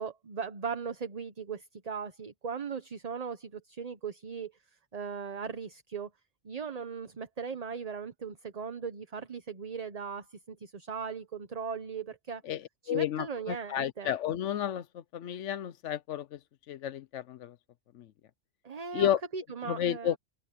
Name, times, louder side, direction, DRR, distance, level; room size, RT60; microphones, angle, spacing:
voice 1, 0.0-4.5 4.9-6.1 6.4-12.4 12.8-14.1 18.6-20.2, right 6 dB, 35° right, 1.0 m, -38 dB
voice 2, 12.4-16.4 16.7-17.6 17.9-18.1 18.9-19.2 19.6-20.2, left 10 dB, 80° left, 1.0 m, -32 dB
open air
omnidirectional pair, 1.2 m